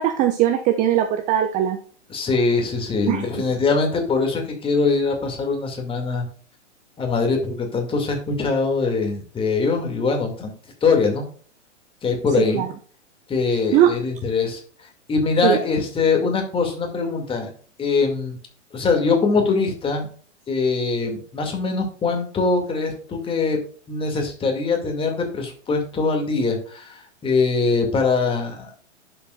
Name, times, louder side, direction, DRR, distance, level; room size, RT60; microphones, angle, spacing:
voice 1, 0.0-1.8 3.1-3.3 12.5-12.7 13.5-13.9 15.4-15.6, right 11 dB, 20° right, 8 dB, 0.6 m, -20 dB
voice 2, 2.1-6.3 7.0-10.5 10.8-11.3 12.0-12.7 13.3-14.6 15.1-17.5 17.8-18.4 18.7-20.1 20.5-23.6 23.9-28.7, left 4 dB, 15° left, 3 dB, 2.2 m, -22 dB
11.0 x 6.9 x 2.4 m, 0.44 s
figure-of-eight pair, 110°, 36 cm